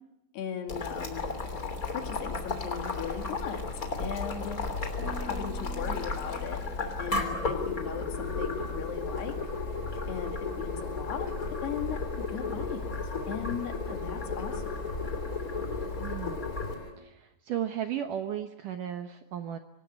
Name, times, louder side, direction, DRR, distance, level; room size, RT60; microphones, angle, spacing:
voice 1, 0.3-1.3 1.9-3.6 4.0-4.6 5.0-6.6 7.0-9.4 10.1-11.4 11.6-12.9 13.3-14.8, left 8 dB, 70° left, 5 dB, 4.3 m, -38 dB
Boiling, 0.7-16.8, left 3 dB, 25° left, 2.8 m, -34 dB
Harp, 5.0-9.1 9.4-9.9 10.4-10.8, left 3 dB, 35° right, 5.7 m, -50 dB
sound 1, 5.7-16.9, left 4 dB, 50° left, 5.2 m, -48 dB
voice 2, 16.0-16.4 17.0-19.6, right 10 dB, 70° right, 7 dB, 2.1 m, -35 dB
26.0 x 19.0 x 9.6 m, 0.92 s
omnidirectional pair, 5.0 m